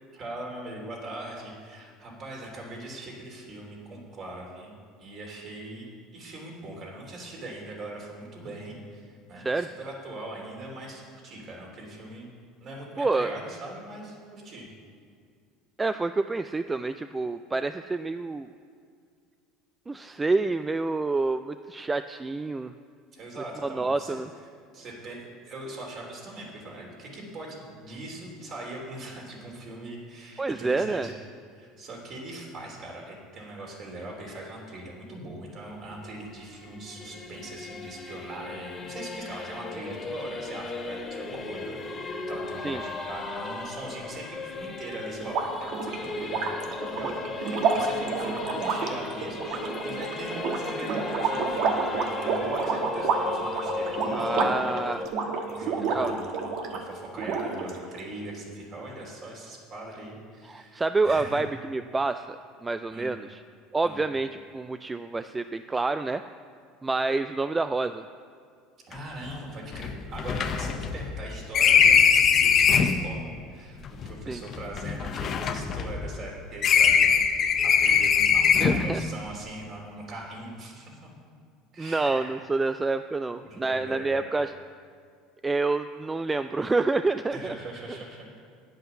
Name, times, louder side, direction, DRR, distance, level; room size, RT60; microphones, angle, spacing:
voice 1, 0.1-12.3 12.6-14.7 23.1-24.2 24.7-31.1 31.5-54.7 55.4-56.3 56.7-61.4 62.9-63.1 63.8-64.0 68.9-81.1 81.7-82.3 83.4-84.2 87.3-88.3, right 2 dB, 45° right, -1 dB, 3.3 m, -41 dB
voice 2, 9.4-9.7 13.0-13.3 15.8-18.5 19.9-22.7 23.6-24.3 30.4-31.1 42.6-42.8 54.1-55.1 55.9-56.1 60.5-63.4 63.7-66.2 66.8-68.0 74.3-74.4 78.6-79.0 81.8-84.5 85.4-87.5, right 3 dB, 15° right, 10 dB, 0.3 m, -28 dB
Singing / Musical instrument, 35.7-55.1, left 3 dB, 20° left, 1.8 m, -36 dB
sound 1, 45.2-56.8 57.2-58.0, right 4 dB, 60° right, 1.3 m, -29 dB
sound 2, 68.9-69.0 69.2-69.3 69.7-73.0 73.9-76.3 76.6-78.9, left 7 dB, 40° left, 0.7 m, -22 dB
9.4 x 8.0 x 7.0 m, 2.2 s
supercardioid pair, 110°, 0 cm